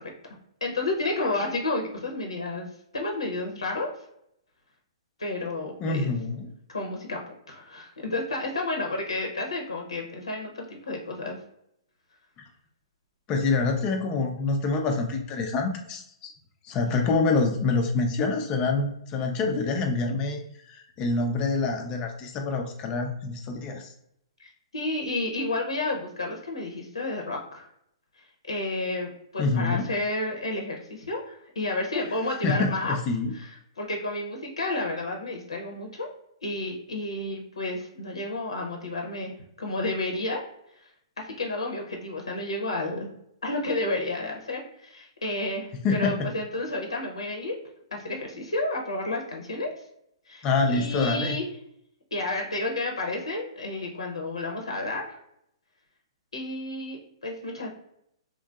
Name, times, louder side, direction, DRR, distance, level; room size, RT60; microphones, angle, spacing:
voice 1, 0.6-2.7 2.9-3.9 5.2-6.1 6.7-11.4 24.4-27.7 28.5-32.9 33.3-36.1 36.4-39.3 39.6-40.4 41.2-43.1 43.4-47.6 47.9-49.7 50.3-51.4 52.1-55.2 56.3-57.7, left 2 dB, 80° left, 2 dB, 0.6 m, -31 dB
voice 2, 5.8-6.5 13.3-16.3 16.6-20.4 20.7-23.9 29.4-29.9 32.4-33.3 45.8-46.2 50.4-51.4, left 3 dB, 30° left, 3 dB, 0.4 m, -26 dB
3.0 x 2.6 x 2.3 m, 0.74 s
figure-of-eight pair, 120°, 3 cm